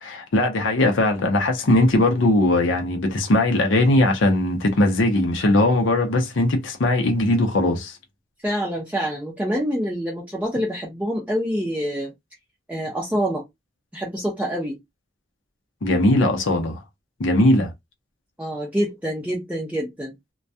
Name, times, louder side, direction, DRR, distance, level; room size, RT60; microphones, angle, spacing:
voice 1, 0.0-8.0 15.8-16.8 17.2-17.7, left 1 dB, 80° left, 0.6 m, -19 dB
voice 2, 8.4-12.1 12.7-13.4 13.9-14.8 18.4-20.1, equal, 10° right, 0.5 m, -26 dB
2.2 x 2.2 x 2.6 m
head